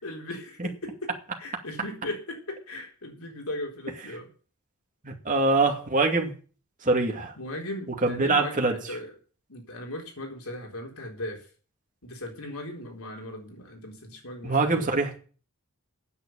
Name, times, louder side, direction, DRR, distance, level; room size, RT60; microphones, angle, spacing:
voice 1, 0.0-1.1 1.4-4.3 7.4-9.1 9.5-11.4 12.0-14.9, left 1 dB, 80° left, 2 dB, 4.0 m, -37 dB
voice 2, 5.0-6.3 6.8-7.3 8.0-8.8 14.4-15.2, right 3 dB, 35° right, 2 dB, 2.4 m, -24 dB
9.4 x 7.9 x 9.0 m, 0.39 s
head